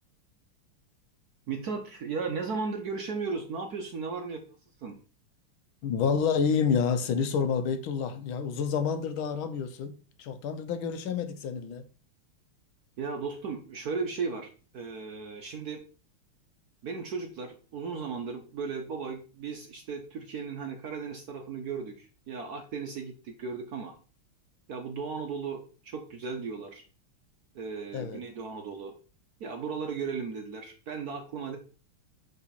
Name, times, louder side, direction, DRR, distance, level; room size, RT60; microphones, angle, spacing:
voice 1, 1.5-4.4 4.8-5.0 13.0-15.8 16.8-23.9 24.7-26.8 27.5-28.9 29.4-31.6, right 5 dB, 65° right, 1.0 m, -36 dB
voice 2, 5.8-11.9 27.9-28.2, left 6 dB, 75° left, 1.5 m, -29 dB
8.2 x 4.0 x 4.2 m
omnidirectional pair, 2.4 m